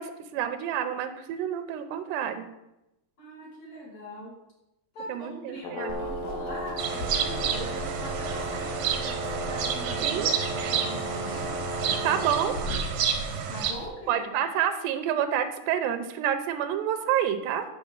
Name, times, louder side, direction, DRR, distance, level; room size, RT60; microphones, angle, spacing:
voice 1, 0.0-2.5 5.1-6.0 10.0-10.3 12.0-12.6 14.1-17.7, right 9 dB, 85° right, 9 dB, 2.9 m, -28 dB
voice 2, 3.2-4.4 4.9-11.5 11.8-12.2 12.7-12.8 13.5-14.2, equal, 45° left, -3 dB, 3.0 m, -41 dB
Brass instrument, 5.6-12.7, equal, 90° left, 3.6 m, -35 dB
Water, 5.9-13.9, left 1 dB, 70° left, 3.2 m, -40 dB
sound 1, 6.8-13.7, right 7 dB, 65° right, 2.0 m, -30 dB
10.0 x 5.6 x 7.2 m, 0.91 s
omnidirectional pair, 4.8 m